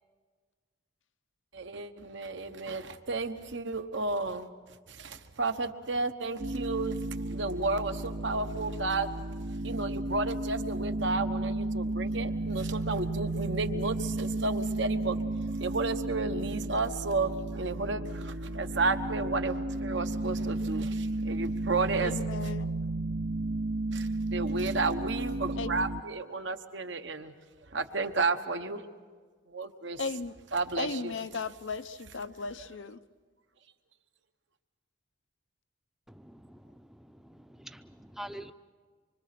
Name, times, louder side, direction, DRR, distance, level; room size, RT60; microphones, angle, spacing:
voice 1, 1.5-4.5 4.9-9.1 9.6-15.2 15.5-22.1 23.9-27.3 27.7-28.9 29.5-30.0 30.5-31.1, right 3 dB, 65° right, 1.2 m, -32 dB
sound 1, 6.4-26.0, right 2 dB, 45° right, 0.6 m, -33 dB
voice 2, 22.0-22.8 25.6-25.8 30.0-30.4 30.8-33.0, left 4 dB, 75° left, 0.7 m, -36 dB
voice 3, 36.2-36.8 37.3-38.5, right 1 dB, ahead, 0.6 m, -45 dB
25.5 x 24.5 x 6.0 m
head